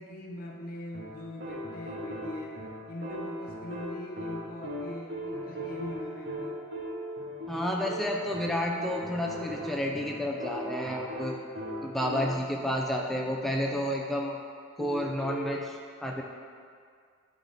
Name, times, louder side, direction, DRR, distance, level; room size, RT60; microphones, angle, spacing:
voice 1, 0.0-2.6 2.9-6.7 7.5-8.3, left 1 dB, 45° left, 0 dB, 0.6 m, -42 dB
sound 1, 0.9-12.6 14.8-15.6, equal, 60° right, 1.5 m, -38 dB
voice 2, 7.5-11.4 11.8-14.4 14.8-16.2, equal, ahead, -1 dB, 0.4 m, -31 dB
11.5 x 3.8 x 3.5 m, 2.1 s
head